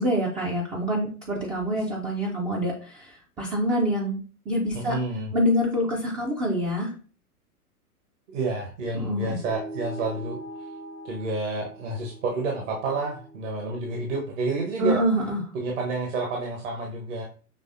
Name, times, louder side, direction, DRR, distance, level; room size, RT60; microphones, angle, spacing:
voice 1, 0.0-4.2 4.5-5.0 5.3-6.9 8.9-9.4 14.8-15.4, equal, 10° right, -3 dB, 0.5 m, -26 dB
voice 2, 4.7-5.3 8.3-10.4 11.0-15.0 15.5-17.2, right 3 dB, 55° right, 0 dB, 1.2 m, -29 dB
sound 1, 9.4-14.2, right 1 dB, 85° right, 0.9 m, -42 dB
6.5 x 3.2 x 2.5 m, 0.38 s
figure-of-eight pair, 100°, 46 cm